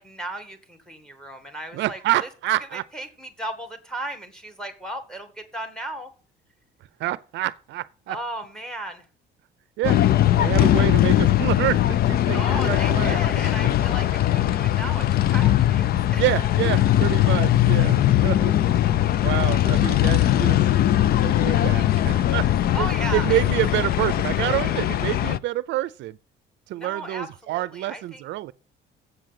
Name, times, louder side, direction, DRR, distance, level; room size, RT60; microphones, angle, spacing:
voice 1, 0.0-2.3 2.7-6.1 8.1-9.0 12.3-16.2 22.7-23.4 26.8-28.3, right 1 dB, 5° left, 2.1 m, -35 dB
voice 2, 1.7-2.8 7.0-8.2 9.8-10.0 10.4-13.2 16.2-18.5 18.9-20.6 21.2-22.5 22.8-22.9 23.1-26.2 26.7-28.5, right 15 dB, 70° right, 0.5 m, -27 dB
sound 1, 9.8-25.4, left 13 dB, 50° left, 0.5 m, -20 dB
8.1 x 6.4 x 7.5 m
cardioid pair, 130°, 20 cm